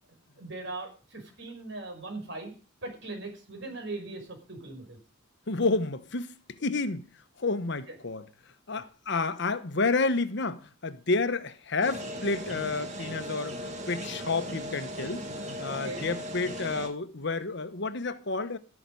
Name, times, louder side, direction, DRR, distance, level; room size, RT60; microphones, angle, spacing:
voice 1, 0.4-2.5 2.8-5.0 7.9-8.0 8.7-8.8 15.7-16.0, right 2 dB, 65° right, 5.9 m, -39 dB
voice 2, 5.5-7.1 7.4-8.2 8.7-15.2 15.6-18.6, left 3 dB, 65° left, 1.1 m, -30 dB
sound 1, 11.8-16.9, equal, 35° right, 2.5 m, -38 dB
13.5 x 11.0 x 5.5 m
head